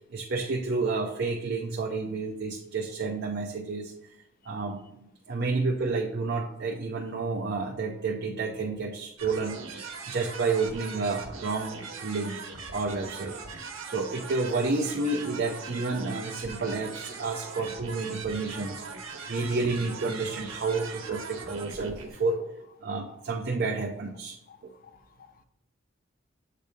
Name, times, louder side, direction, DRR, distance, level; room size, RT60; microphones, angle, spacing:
voice 1, 0.1-3.9 4.5-9.6 10.1-12.4 12.7-13.3 13.9-18.8 19.3-22.5 22.8-24.4, right 3 dB, 55° right, 0.6 m, -30 dB
sound 1, 9.2-22.1, right 4 dB, 85° right, 1.0 m, -40 dB
voice 2, 24.8-25.4, left 7 dB, 45° left, 0.4 m, -55 dB
7.5 x 2.7 x 5.0 m
head